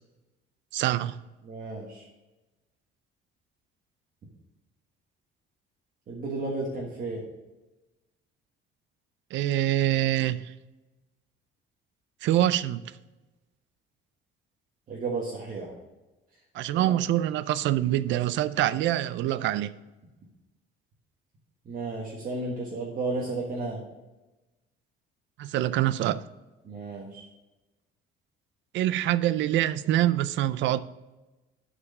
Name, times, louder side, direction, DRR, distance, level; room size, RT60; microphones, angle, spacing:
voice 1, 0.7-1.2 9.3-10.5 12.2-12.8 16.5-19.7 25.4-26.2 28.7-30.8, right 13 dB, 60° right, 16 dB, 0.5 m, -25 dB
voice 2, 1.4-2.0 6.1-7.2 14.9-15.7 16.7-16.9 21.6-23.8 26.6-27.2, right 3 dB, 40° right, -4 dB, 1.6 m, -33 dB
8.5 x 5.0 x 6.6 m, 1.1 s
cardioid pair, 150°, 21 cm